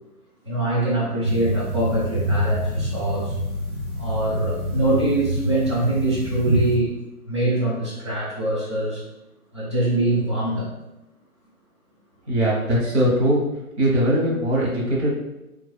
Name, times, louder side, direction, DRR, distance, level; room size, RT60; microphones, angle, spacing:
voice 1, 0.4-3.4 4.0-6.9 7.2-9.0 9.5-10.7, right 1 dB, 20° right, -7 dB, 0.5 m, -23 dB
sound 1, 1.2-6.8, equal, 90° right, 1.1 m, -26 dB
voice 2, 12.3-13.4 13.8-15.2, right 1 dB, 45° right, -4 dB, 1.1 m, -20 dB
3.2 x 2.2 x 2.3 m, 0.92 s
figure-of-eight pair, 135°, 44 cm